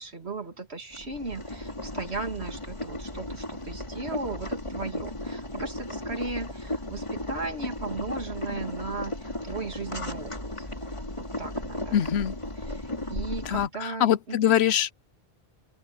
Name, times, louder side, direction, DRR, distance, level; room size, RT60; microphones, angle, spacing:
voice 1, 0.0-10.9 11.4-12.0 12.6-14.6, right 3 dB, 85° right, 2.9 m, -37 dB
Boiling, 0.9-13.7, left 1 dB, 30° left, 2.8 m, -35 dB
voice 2, 11.9-12.3 13.5-14.9, left 10 dB, 80° left, 1.0 m, -23 dB
open air
omnidirectional pair, 1.1 m